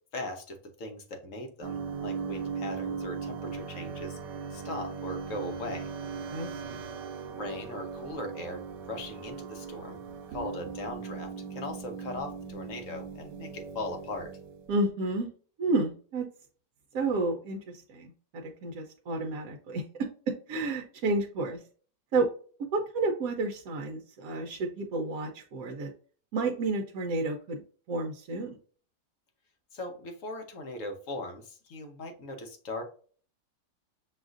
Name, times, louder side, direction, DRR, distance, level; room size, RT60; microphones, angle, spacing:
voice 1, 0.1-4.2 4.5-5.9 7.3-8.6 8.9-10.0 10.3-14.3 29.7-32.8, left 2 dB, 55° left, 4 dB, 1.1 m, -39 dB
sound 1, 1.6-14.8, right 6 dB, 90° right, 1.3 m, -39 dB
voice 2, 6.3-6.8 14.7-15.3 15.6-16.3 16.9-19.8 20.5-21.6 22.1-22.3 22.7-25.9 26.3-27.6 27.9-28.6, right 2 dB, 70° right, 3 dB, 1.0 m, -31 dB
6.3 x 2.4 x 2.4 m, 0.43 s
omnidirectional pair, 1.8 m